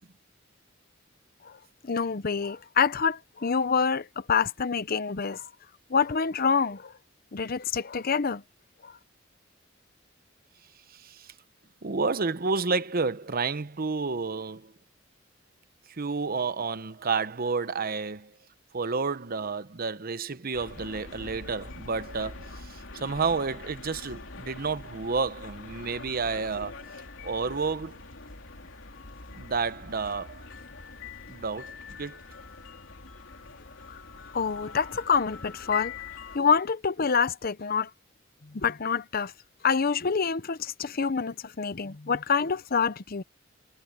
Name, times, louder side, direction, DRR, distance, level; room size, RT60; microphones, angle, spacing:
voice 1, 1.8-5.5 5.9-6.9 7.3-8.4 8.8-8.9 33.9-34.0 34.3-35.9 36.3-37.9 38.5-39.3 39.6-43.2, left 6 dB, 50° left, 0.7 m, -26 dB
voice 2, 11.0-11.3 11.8-14.7 16.0-18.3 18.7-26.7 27.2-28.0 29.3-30.4 31.3-32.2, right 4 dB, 50° right, 0.9 m, -30 dB
sound 1, 20.5-36.4, left 4 dB, 90° left, 3.1 m, -43 dB
head